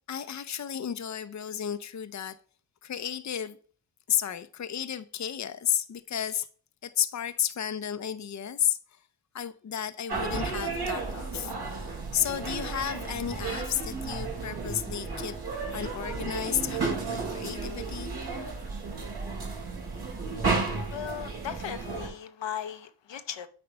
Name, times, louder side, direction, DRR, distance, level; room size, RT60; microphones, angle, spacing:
voice 1, 0.1-2.4 2.8-3.6 4.1-6.5 6.8-8.8 9.3-11.5 12.1-15.4 15.7-18.1, left 9 dB, 40° left, 0.7 m, -32 dB
sound 1, 10.1-22.1, right 4 dB, 60° right, 3.1 m, -33 dB
voice 2, 20.9-23.5, left 9 dB, 80° left, 0.9 m, -37 dB
8.7 x 3.3 x 5.3 m
cardioid pair, 55°, 43 cm